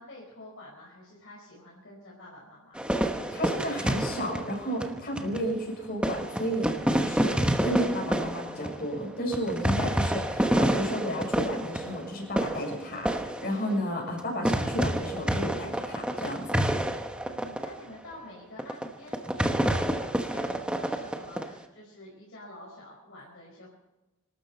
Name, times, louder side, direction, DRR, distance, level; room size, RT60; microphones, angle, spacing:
voice 1, 0.0-2.8 17.2-23.7, left 1 dB, 60° left, -4 dB, 5.1 m, -48 dB
sound 1, 2.8-5.5 6.0-14.2 14.5-17.7 18.1-18.2 18.6-18.8 19.1-21.5, right 1 dB, 5° right, 1.1 m, -28 dB
voice 2, 3.3-6.7 7.0-16.6, equal, 45° left, -1 dB, 6.9 m, -32 dB
26.0 x 12.5 x 4.4 m, 1.0 s
head